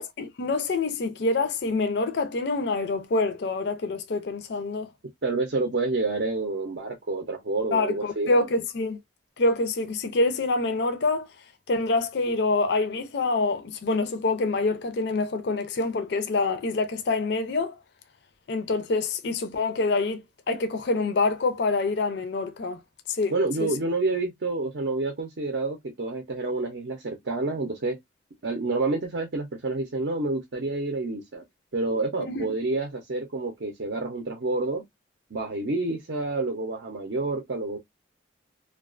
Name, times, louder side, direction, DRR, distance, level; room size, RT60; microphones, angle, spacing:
voice 1, 0.0-4.9 7.7-9.0 9.4-11.3 11.7-17.8 18.5-20.2 20.5-22.8 23.1-23.7 32.3-32.4, left 3 dB, 55° left, 0.4 m, -26 dB
voice 2, 5.2-8.3 23.3-28.0 28.4-31.4 31.7-34.8 35.3-37.8, right 3 dB, 60° right, 0.5 m, -28 dB
2.3 x 2.2 x 2.4 m
head